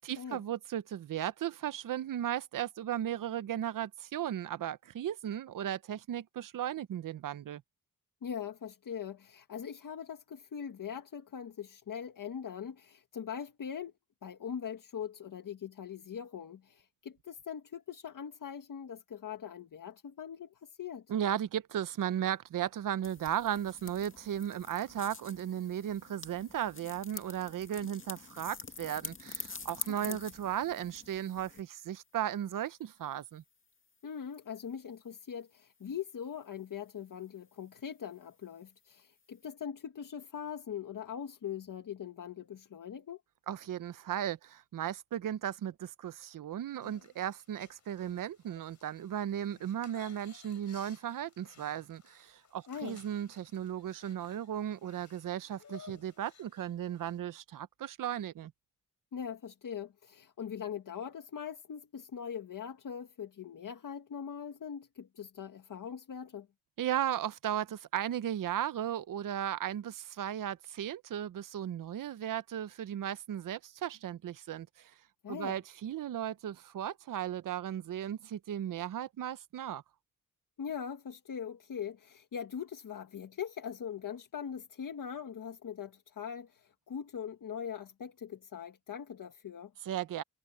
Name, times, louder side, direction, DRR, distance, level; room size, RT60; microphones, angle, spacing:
voice 1, 0.0-7.6 21.1-33.4 43.5-58.5 66.8-74.9 75.3-79.8 89.9-90.2, right 10 dB, 80° right, 0.7 m, -36 dB
voice 2, 8.2-13.9 14.2-21.1 29.9-30.2 34.0-43.2 52.7-53.0 59.1-66.5 75.2-75.6 80.6-89.7, left 8 dB, 75° left, 1.8 m, -41 dB
sound 1, 23.0-31.6, left 4 dB, 40° left, 2.2 m, -46 dB
sound 2, 46.8-57.2, left 6 dB, 60° left, 4.7 m, -58 dB
wide cardioid pair, 90°, 32 cm